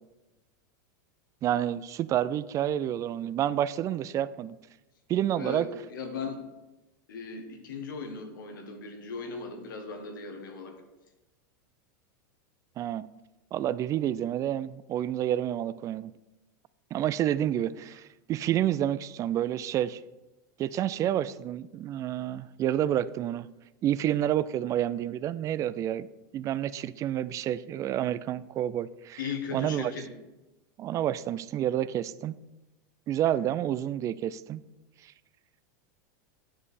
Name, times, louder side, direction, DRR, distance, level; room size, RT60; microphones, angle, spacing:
voice 1, 1.4-4.6 5.1-5.7 12.8-13.1 13.5-16.1 16.9-18.0 18.3-20.0 20.6-23.5 23.8-26.1 26.3-29.2 29.5-29.9 30.8-32.3 33.1-34.6, right 11 dB, 30° right, 17 dB, 0.3 m, -29 dB
voice 2, 5.4-6.5 7.1-10.8 29.2-30.1, left 5 dB, 85° left, 4 dB, 1.4 m, -37 dB
9.6 x 5.2 x 4.2 m, 1.0 s
supercardioid pair, 120°, 10 cm